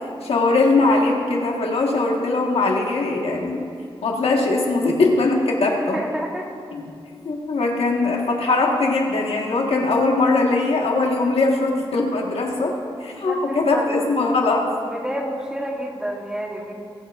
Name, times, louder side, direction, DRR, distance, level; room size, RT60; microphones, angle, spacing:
voice 1, 0.2-3.6 4.0-6.0 6.7-6.9 7.2-12.7 13.0-14.7, left 3 dB, 80° left, 0 dB, 1.6 m, -20 dB
voice 2, 5.7-6.5 12.8-14.1 14.9-16.7, equal, 10° right, 0 dB, 1.3 m, -30 dB
23.0 x 8.8 x 2.6 m, 2.4 s
wide cardioid pair, 100°, 10 cm